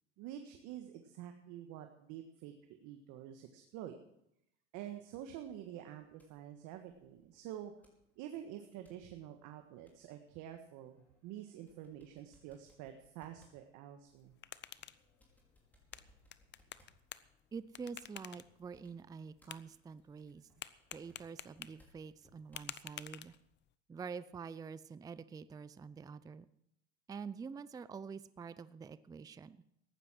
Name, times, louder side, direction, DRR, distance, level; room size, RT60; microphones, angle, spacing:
voice 1, 0.2-2.5 2.8-4.0 4.7-7.7 8.2-14.3, right 11 dB, 55° right, 6 dB, 1.6 m, -48 dB
sound 1, 5.8-22.8, equal, 5° left, 5.0 m, -71 dB
sound 2, 14.1-23.7, left 11 dB, 30° left, 0.7 m, -52 dB
voice 2, 17.5-20.4 20.9-23.3 23.9-26.5 27.1-29.6, right 5 dB, 10° right, 16 dB, 0.5 m, -47 dB
15.0 x 11.0 x 6.1 m, 0.78 s
hypercardioid pair, 100°, 35 cm